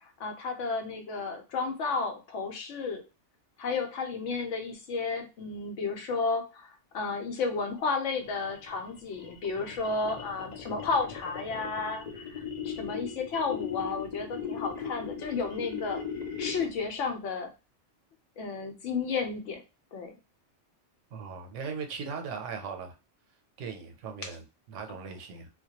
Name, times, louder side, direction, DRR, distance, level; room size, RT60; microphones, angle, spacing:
voice 1, 0.2-3.0 3.6-16.0 16.4-17.5 18.4-19.6 19.9-20.1, left 4 dB, 80° left, 4 dB, 1.0 m, -32 dB
sound 1, 8.2-16.9, left 7 dB, 60° left, 0.4 m, -39 dB
voice 2, 21.1-22.9 23.6-25.5, right 5 dB, 85° right, 5 dB, 0.9 m, -39 dB
2.2 x 2.1 x 2.8 m, 0.29 s
omnidirectional pair, 1.2 m